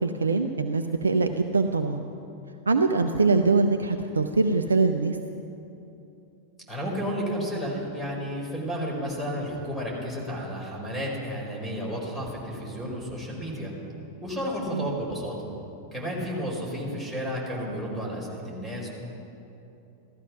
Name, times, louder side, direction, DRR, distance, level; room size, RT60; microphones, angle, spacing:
voice 1, 0.0-2.0 2.7-5.2 14.7-14.9, right 3 dB, 75° right, 6 dB, 0.6 m, -23 dB
voice 2, 6.7-13.7 14.2-15.5 15.9-18.9, equal, 5° left, -3 dB, 4.7 m, -32 dB
15.5 x 13.5 x 6.0 m, 2.9 s
figure-of-eight pair, 90°, 0 cm